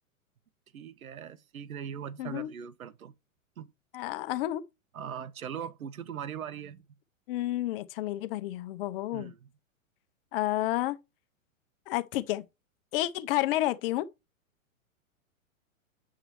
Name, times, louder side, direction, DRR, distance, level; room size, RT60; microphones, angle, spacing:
voice 1, 0.7-3.1 3.6-3.7 4.9-6.8 9.1-9.5, right 8 dB, 80° right, 0.8 m, -40 dB
voice 2, 2.2-2.5 3.9-4.6 7.3-9.3 10.3-11.0 11.9-12.4 12.9-14.1, left 15 dB, 45° left, 0.7 m, -30 dB
8.2 x 5.8 x 3.0 m
hypercardioid pair, 110°, 42 cm